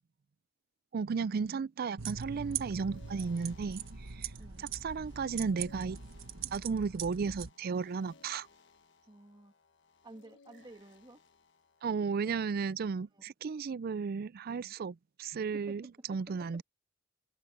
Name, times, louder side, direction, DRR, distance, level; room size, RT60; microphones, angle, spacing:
voice 1, 0.9-4.3 4.6-6.0 6.4-8.5 11.8-16.6, right 5 dB, 45° right, 0.4 m, -34 dB
sound 1, 2.0-11.8, left 4 dB, 60° left, 1.4 m, -62 dB
sound 2, 2.0-7.5, right 7 dB, 70° right, 1.3 m, -42 dB
voice 2, 9.1-9.5 10.0-11.2 13.1-13.2 14.5-14.7 15.5-16.6, right 1 dB, 20° right, 1.6 m, -53 dB
head